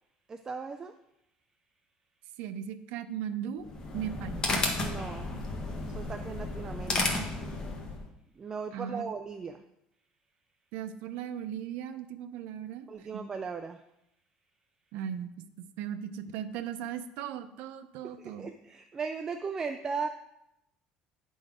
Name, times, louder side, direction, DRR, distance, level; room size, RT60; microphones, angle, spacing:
voice 1, 0.3-0.9 4.8-5.3 5.9-7.3 8.4-9.6 12.9-13.8 18.4-20.1, right 5 dB, 20° right, 8 dB, 0.4 m, -37 dB
voice 2, 2.4-3.7 3.9-4.4 8.7-9.0 10.7-13.2 14.9-18.5, right 9 dB, 75° right, 9 dB, 0.6 m, -38 dB
sound 1, 3.6-8.1, left 2 dB, 25° left, 1.2 m, -33 dB
9.9 x 3.9 x 5.0 m, 0.83 s
cardioid pair, 145°, 3 cm